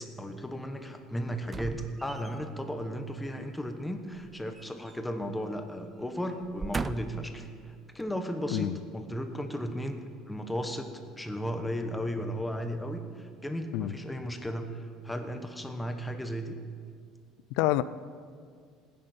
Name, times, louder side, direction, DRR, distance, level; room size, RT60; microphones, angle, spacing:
voice 1, 0.0-7.5 7.9-10.0 10.3-10.9 11.1-14.7 15.0-16.5, equal, 5° left, 6 dB, 1.1 m, -35 dB
sound 1, 1.4-2.6 4.2-5.3 5.6-5.8 6.4-7.3 8.0-8.1, right 4 dB, 20° right, 0.3 m, -38 dB
voice 2, 8.5-8.8 13.7-13.9 17.6-17.8, left 16 dB, 80° left, 16 dB, 0.4 m, -27 dB
19.0 x 10.5 x 4.4 m, 2.1 s
cardioid pair, 140°, 0 cm